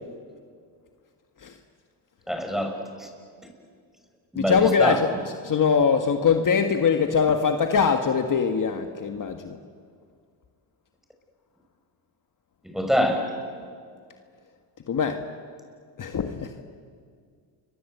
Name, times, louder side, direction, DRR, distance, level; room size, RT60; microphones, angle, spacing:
voice 1, 2.3-3.1 4.3-5.0 12.6-13.3, equal, ahead, 4 dB, 6.2 m, -25 dB
voice 2, 4.3-5.1 5.4-9.6 14.9-15.2 16.0-16.5, left 6 dB, 45° left, 6 dB, 1.7 m, -22 dB
29.0 x 24.0 x 8.1 m, 2.1 s
cardioid pair, 80°, 44 cm